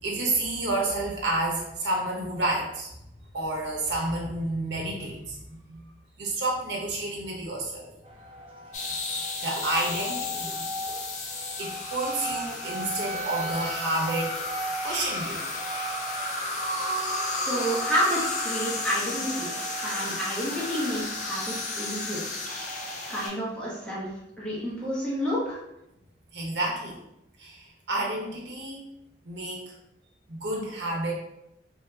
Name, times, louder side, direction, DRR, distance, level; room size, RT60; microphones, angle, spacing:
voice 1, 0.0-2.9 3.3-5.8 6.2-7.9 9.4-10.7 11.6-14.3 14.8-15.4 26.3-27.0 27.4-28.9 29.2-29.6 30.3-31.1, right 2 dB, 90° right, -2 dB, 0.8 m, -30 dB
sound 1, 8.0-23.3, right 1 dB, 30° right, 0.4 m, -38 dB
sound 2, 8.7-23.3, left 2 dB, 45° left, 0.4 m, -33 dB
voice 2, 17.4-19.5 19.8-22.2 23.1-24.1 24.4-25.6, equal, 5° left, -7 dB, 0.9 m, -29 dB
3.6 x 2.7 x 2.3 m, 0.86 s
head